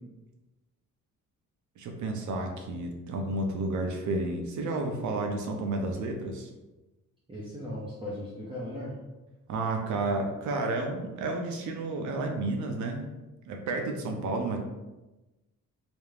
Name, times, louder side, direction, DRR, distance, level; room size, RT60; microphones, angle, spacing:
voice 1, 1.8-6.5 9.5-13.0 13.5-14.6, right 2 dB, 60° right, 3 dB, 0.5 m, -31 dB
voice 2, 7.3-9.0 13.8-14.1, left 1 dB, 15° right, -7 dB, 0.6 m, -38 dB
2.4 x 2.1 x 3.1 m, 1.1 s
cardioid pair, 100°, 33 cm